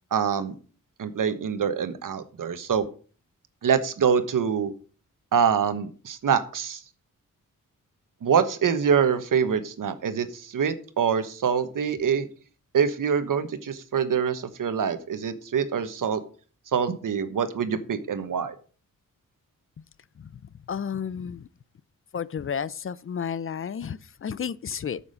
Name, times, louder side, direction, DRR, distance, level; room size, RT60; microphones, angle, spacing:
voice 1, 0.1-0.5 1.0-2.9 3.6-4.7 5.3-6.8 8.2-12.3 12.7-16.2 16.7-18.5, right 7 dB, 70° right, 1.2 m, -25 dB
voice 2, 20.7-21.5 22.1-25.0, left 7 dB, 40° left, 0.5 m, -32 dB
9.6 x 7.3 x 5.1 m
wide cardioid pair, 90°, 33 cm